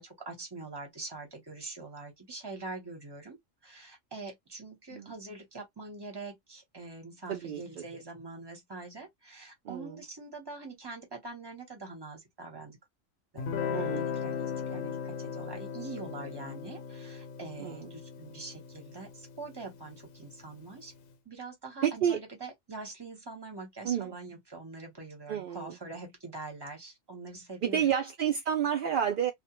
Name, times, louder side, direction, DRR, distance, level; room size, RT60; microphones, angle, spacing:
voice 1, 0.0-3.4 3.6-12.8 13.3-17.8 18.2-19.1 19.4-20.9 21.3-27.8, right 3 dB, 20° right, 0.9 m, -44 dB
voice 2, 7.3-7.8 9.6-10.0 13.7-14.1 14.7-15.0 17.6-17.9 21.8-22.2 23.8-24.2 25.3-25.8 27.6-29.3, right 9 dB, 65° right, 0.5 m, -30 dB
Guitar, 13.4-20.5, left 7 dB, 85° left, 1.0 m, -37 dB
2.3 x 2.2 x 2.9 m
omnidirectional pair, 1.4 m